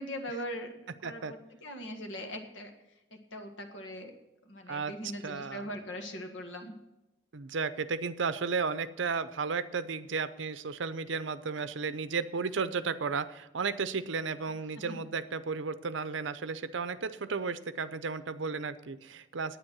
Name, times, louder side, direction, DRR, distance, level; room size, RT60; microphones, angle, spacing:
voice 1, 0.0-2.7 3.1-4.1 4.4-6.7 14.7-15.0, equal, 75° left, 4 dB, 1.6 m, -41 dB
voice 2, 1.0-1.3 4.7-4.9 5.2-5.7 7.3-19.6, right 5 dB, 75° right, 13 dB, 0.6 m, -34 dB
9.2 x 9.1 x 6.1 m, 0.96 s
head